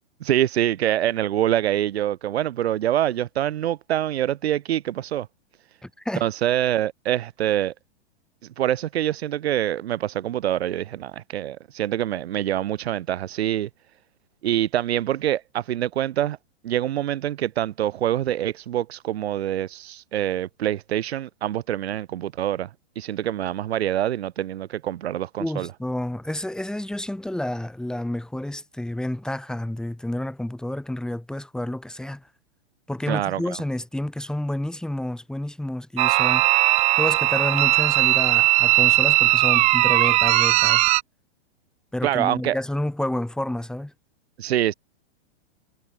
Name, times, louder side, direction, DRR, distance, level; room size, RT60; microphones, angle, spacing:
voice 1, 0.2-5.3 6.2-7.7 8.6-13.7 14.4-16.4 16.6-22.7 23.0-25.7 33.1-33.6 42.0-42.6 44.4-44.7, right 12 dB, 65° right, 7.6 m, -25 dB
voice 2, 5.8-6.2 25.4-32.2 32.9-36.5 36.9-40.9 41.9-43.9, left 1 dB, ahead, 5.9 m, -29 dB
sound 1, 36.0-41.0, right 20 dB, 20° right, 0.6 m, -18 dB
hypercardioid pair, 150°, 34 cm